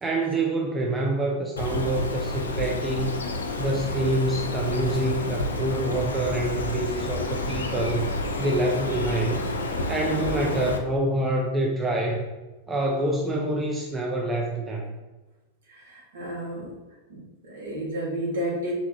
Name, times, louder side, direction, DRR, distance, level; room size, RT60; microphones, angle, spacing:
voice 1, 0.0-3.2 3.6-8.1 8.4-9.5 9.9-12.2 12.7-14.9, right 1 dB, 15° right, 0 dB, 0.5 m, -26 dB
Bird, 1.6-10.8, left 2 dB, 70° left, 0.4 m, -30 dB
voice 2, 15.7-16.7 17.1-18.7, equal, 60° right, -4 dB, 1.5 m, -32 dB
4.0 x 3.4 x 2.8 m, 1.1 s
figure-of-eight pair, 90°, 0 cm